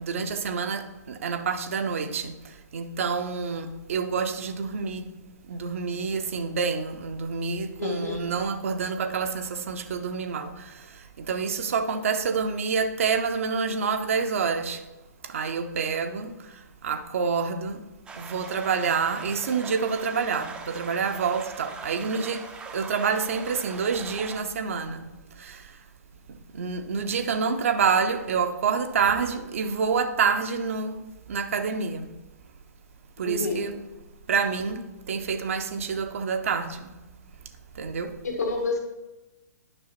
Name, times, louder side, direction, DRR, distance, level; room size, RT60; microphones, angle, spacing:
voice 1, 0.0-2.4 2.7-5.1 5.5-10.7 11.2-14.8 15.2-16.3 16.8-17.8 18.2-25.1 25.4-25.6 26.5-31.0 31.3-32.1 33.2-33.8 34.3-34.8 35.1-37.0 37.8-38.1, right 5 dB, 50° right, 8 dB, 0.6 m, -27 dB
voice 2, 7.8-8.3 33.2-33.7 38.2-38.8, left 4 dB, 65° left, 2 dB, 1.7 m, -29 dB
sound 1, 18.1-24.4, right 5 dB, 10° right, 0.5 m, -41 dB
9.8 x 6.2 x 2.9 m, 1.1 s
figure-of-eight pair, 120°, 9 cm